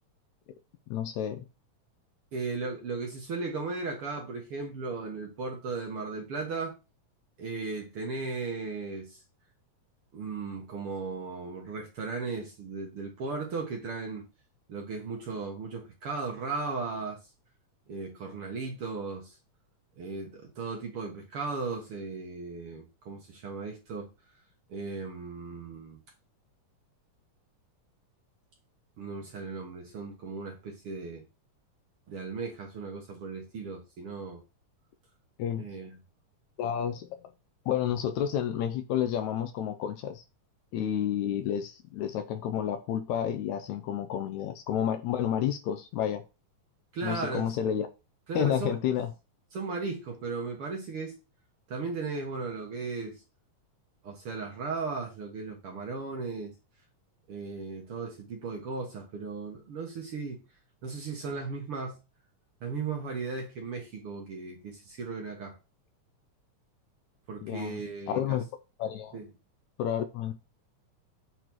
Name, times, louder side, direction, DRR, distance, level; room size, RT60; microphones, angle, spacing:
voice 1, 0.9-1.5 35.4-35.7 36.6-37.3 37.7-40.2 40.7-46.2 47.0-47.9 48.4-49.1 67.4-67.8 68.1-68.4 68.8-69.2 69.8-70.3, left 9 dB, 75° left, 1.8 m, -30 dB
voice 2, 2.3-6.7 7.4-9.2 10.1-14.3 14.7-17.2 17.9-19.4 20.0-24.1 24.7-26.0 29.0-31.2 32.1-34.4 35.6-36.0 46.9-47.5 48.3-48.8 49.5-51.1 51.7-53.2 54.0-56.5 57.3-60.5 60.8-62.0 62.6-65.5 67.3-68.4 69.1-69.3, right 4 dB, 55° right, 1.8 m, -36 dB
6.9 x 4.2 x 4.5 m
omnidirectional pair, 3.7 m